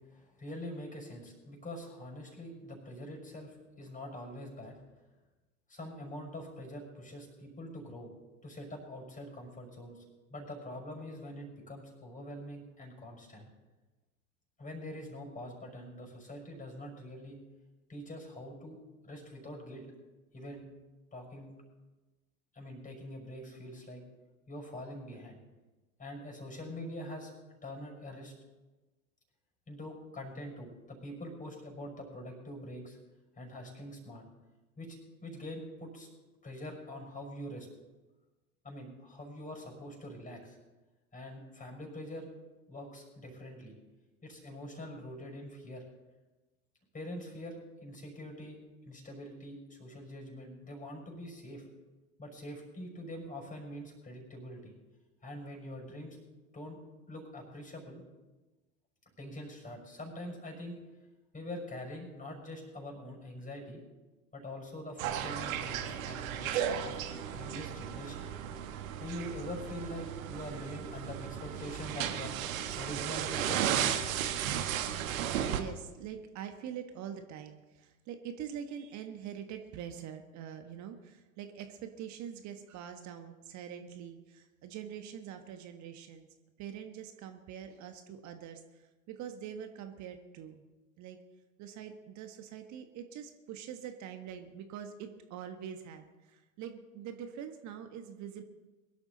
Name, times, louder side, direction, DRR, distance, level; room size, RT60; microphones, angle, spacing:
voice 1, 0.1-4.8 5.7-8.1 8.4-10.0 10.3-13.5 14.6-17.4 17.9-18.8 19.0-19.9 20.3-20.7 21.1-21.5 22.5-24.0 24.5-25.4 26.0-27.3 27.6-28.3 29.7-33.0 33.4-34.2 34.8-36.1 36.4-37.7 38.6-40.6 41.1-42.3 42.7-43.7 44.2-45.8 46.9-51.6 52.2-54.7 55.2-56.2 56.5-56.8 57.1-58.0 59.2-60.7 61.3-63.8 64.3-67.0 67.3-68.3 69.0-72.3 72.8-73.8, left 1 dB, 15° left, 2 dB, 5.9 m, -44 dB
sound 1, 65.0-75.6, right 9 dB, 60° right, 1.5 m, -35 dB
voice 2, 75.5-86.3 86.6-90.7 91.0-91.2 91.6-98.4, right 9 dB, 40° right, 6 dB, 1.4 m, -44 dB
22.5 x 12.0 x 4.0 m, 1.2 s
figure-of-eight pair, 85°, 45 cm